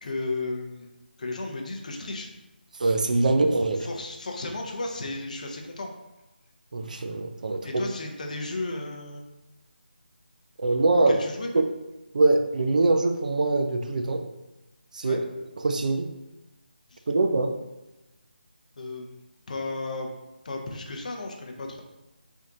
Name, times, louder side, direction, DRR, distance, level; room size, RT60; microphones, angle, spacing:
voice 1, 0.0-0.9 1.2-2.3 3.8-5.9 7.6-9.2 11.1-11.5 15.0-15.2 16.9-17.0 18.8-19.1 19.5-20.1 20.4-21.8, left 2 dB, 45° left, 2 dB, 0.6 m, -34 dB
voice 2, 2.8-3.9 6.7-7.8 10.6-11.2 12.1-14.2 14.9-15.2 15.6-16.1 17.1-17.5, right 2 dB, 50° right, 6 dB, 0.3 m, -23 dB
3.5 x 2.7 x 3.6 m, 1.0 s
figure-of-eight pair, 165°, 5 cm